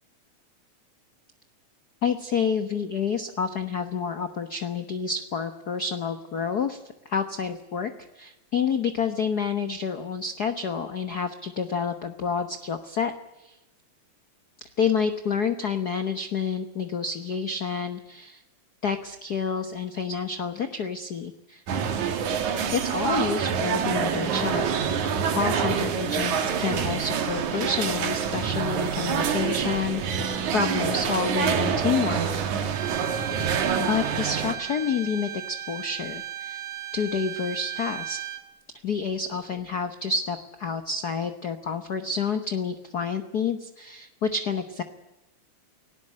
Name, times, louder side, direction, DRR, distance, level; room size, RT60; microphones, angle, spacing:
voice 1, 2.0-6.8 7.0-13.1 13.4-13.5 14.8-18.4 18.8-21.6 22.7-24.6 25.3-32.4 33.9-36.6 36.9-38.2 38.8-44.8, left 6 dB, 65° left, 9 dB, 0.9 m, -29 dB
sound 1, 21.7-34.5, right 7 dB, 80° right, 3.2 m, -26 dB
Bowed string instrument, 32.7-38.4, right 11 dB, 50° right, 2.4 m, -36 dB
18.5 x 17.5 x 10.0 m, 1.0 s
omnidirectional pair, 3.3 m